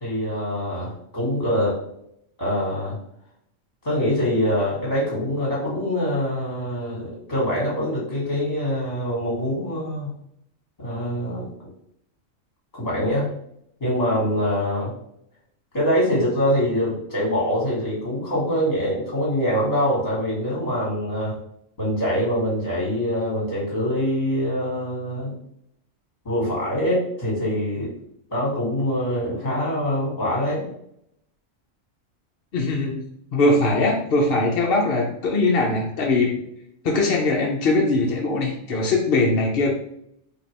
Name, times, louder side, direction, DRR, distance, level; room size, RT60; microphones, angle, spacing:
voice 1, 0.0-1.8 2.4-3.0 3.8-10.1 10.8-11.5 12.7-13.3 13.8-14.9 15.7-21.4 21.8-25.4 26.3-27.9 28.3-30.7, equal, 30° left, -6 dB, 1.8 m, -24 dB
voice 2, 32.5-33.0 33.3-36.3 36.8-39.7, left 2 dB, 55° left, -2 dB, 0.9 m, -21 dB
4.4 x 2.9 x 3.2 m, 0.72 s
omnidirectional pair, 1.3 m